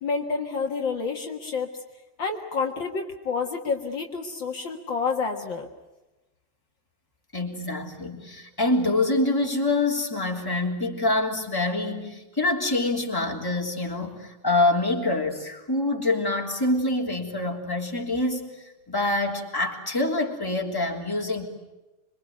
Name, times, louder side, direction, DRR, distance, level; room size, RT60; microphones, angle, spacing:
voice 1, 0.0-1.7 2.2-5.7, left 5 dB, 60° left, 3 dB, 2.3 m, -29 dB
voice 2, 7.3-18.5 18.9-21.5, left 2 dB, 10° left, 0 dB, 3.2 m, -26 dB
26.5 x 23.5 x 9.4 m, 1.1 s
omnidirectional pair, 2.4 m